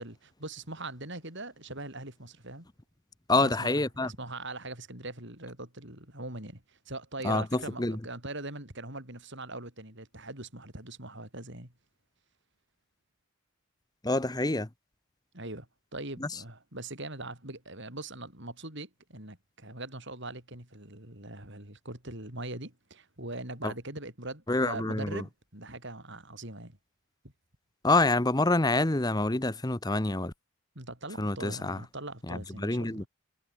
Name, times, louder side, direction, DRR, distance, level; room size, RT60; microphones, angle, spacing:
voice 1, 0.0-2.7 3.4-11.7 15.3-15.7 15.9-26.8 30.7-33.1, right 2 dB, 55° right, 6.3 m, -41 dB
voice 2, 3.3-4.1 7.2-8.0 14.0-14.7 16.2-16.4 23.6-23.7 24.5-25.2 27.8-30.3 31.2-31.8 32.3-33.0, left 2 dB, 15° left, 0.9 m, -27 dB
head